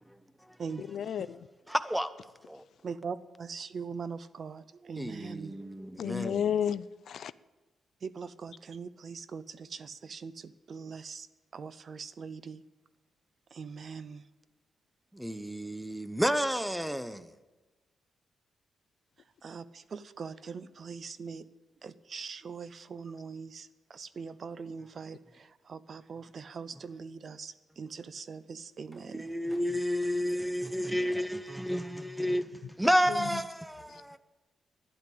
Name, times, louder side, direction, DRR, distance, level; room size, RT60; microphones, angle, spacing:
voice 1, 0.8-1.3 6.0-7.3 33.1-33.2 33.9-34.0, left 8 dB, 70° left, 0.4 m, -32 dB
voice 2, 1.7-2.1 2.5-2.6 5.0-6.5 15.1-17.3 29.1-34.2, equal, 5° right, 0.7 m, -31 dB
voice 3, 2.8-5.6 8.0-11.3 11.5-12.6 13.5-14.3 19.4-21.5 21.8-29.3, right 5 dB, 50° right, 0.6 m, -42 dB
11.5 x 10.0 x 8.5 m
cardioid pair, 95°, 0 cm